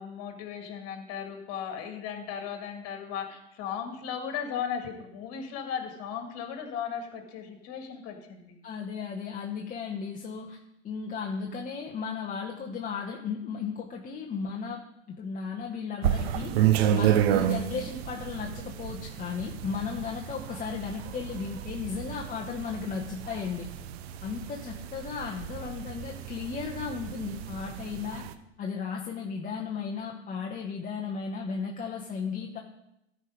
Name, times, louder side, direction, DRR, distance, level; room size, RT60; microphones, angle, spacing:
voice 1, 0.0-8.6 17.4-17.7, left 7 dB, 45° left, 5 dB, 2.0 m, -36 dB
voice 2, 8.6-10.6 10.8-14.8 15.1-16.5 16.9-23.7 24.2-28.2 28.6-32.6, left 6 dB, 25° left, 0 dB, 0.9 m, -35 dB
sound 1, 16.0-28.3, right 11 dB, 65° right, 0.8 m, -31 dB
13.0 x 4.7 x 5.0 m, 0.86 s
hypercardioid pair, 95°, 34 cm